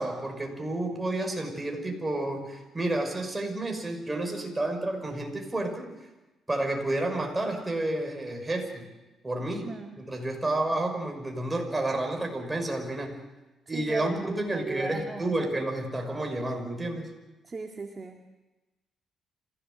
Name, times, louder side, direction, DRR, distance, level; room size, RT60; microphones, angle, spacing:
voice 1, 0.0-5.9 6.5-8.9 9.2-9.7 10.0-13.2 13.7-17.1, right 1 dB, 15° right, 3 dB, 5.8 m, -30 dB
voice 2, 9.6-9.9 13.7-15.5 17.4-18.2, right 4 dB, 30° right, 2 dB, 2.0 m, -37 dB
27.0 x 16.5 x 7.8 m, 1.1 s
cardioid pair, 90°, 0 cm